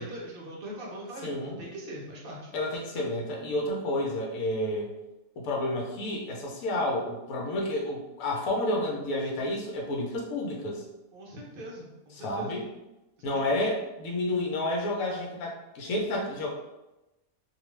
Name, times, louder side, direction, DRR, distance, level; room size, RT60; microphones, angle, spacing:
voice 1, 0.0-2.5 11.1-12.6 13.3-13.6, equal, 55° right, -3 dB, 0.6 m, -41 dB
voice 2, 1.2-1.6 2.5-4.9 5.4-10.8 12.2-12.7 13.2-16.5, left 1 dB, 70° left, -1 dB, 1.0 m, -30 dB
2.5 x 2.3 x 3.0 m, 0.97 s
omnidirectional pair, 1.6 m